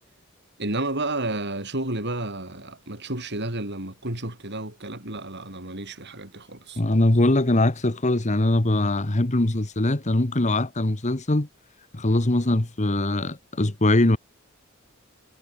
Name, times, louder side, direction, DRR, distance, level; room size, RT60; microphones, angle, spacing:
voice 1, 0.6-6.8, right 2 dB, 55° right, 7.5 m, -31 dB
voice 2, 6.8-11.5 11.9-14.2, left 1 dB, 35° left, 1.4 m, -22 dB
head